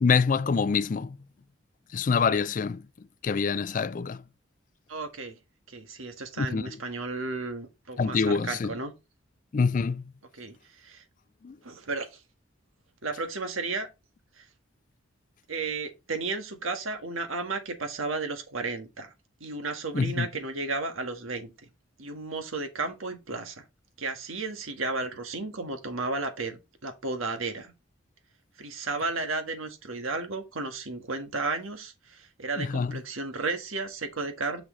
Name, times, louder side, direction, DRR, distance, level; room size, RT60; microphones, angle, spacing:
voice 1, 0.0-1.2 1.9-2.8 3.2-4.2 6.4-6.6 8.0-8.7 9.5-10.1 11.4-11.6 19.9-20.3 32.6-33.0, left 5 dB, 40° left, 0.3 m, -25 dB
voice 2, 4.9-5.4 5.7-8.9 10.3-11.0 11.6-12.2 13.0-13.9 14.4-14.5 15.5-19.1 19.4-21.7 22.0-23.6 24.0-27.7 28.6-34.6, right 3 dB, 90° right, 1.5 m, -33 dB
6.3 x 6.2 x 3.1 m
head